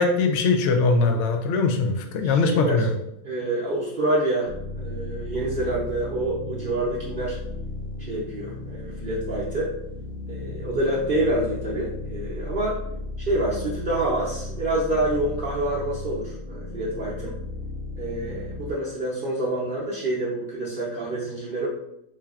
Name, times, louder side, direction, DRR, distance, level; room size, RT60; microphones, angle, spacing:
voice 1, 0.0-2.9, left 3 dB, 65° left, 6 dB, 0.8 m, -21 dB
voice 2, 2.2-2.9 3.2-7.4 8.1-9.7 10.3-12.8 13.3-17.4 18.0-21.7, right 1 dB, 50° right, -7 dB, 0.8 m, -27 dB
sound 1, 4.5-18.7, left 2 dB, 85° left, 0.4 m, -35 dB
4.3 x 3.3 x 2.3 m, 0.79 s
omnidirectional pair, 1.5 m